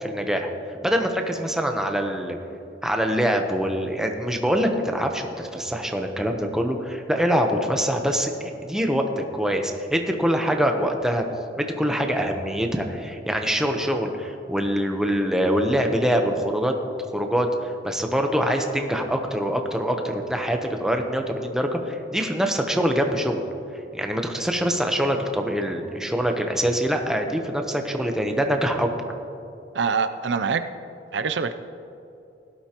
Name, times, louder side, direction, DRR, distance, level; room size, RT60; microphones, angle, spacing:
voice 1, 0.0-0.5 0.8-2.4 2.8-11.2 11.6-16.7 17.1-23.4 23.9-28.9, equal, 5° right, 3 dB, 0.9 m, -24 dB
voice 2, 29.7-30.6 31.1-31.5, right 5 dB, 85° right, 10 dB, 0.5 m, -24 dB
17.5 x 12.0 x 3.0 m, 2.8 s
head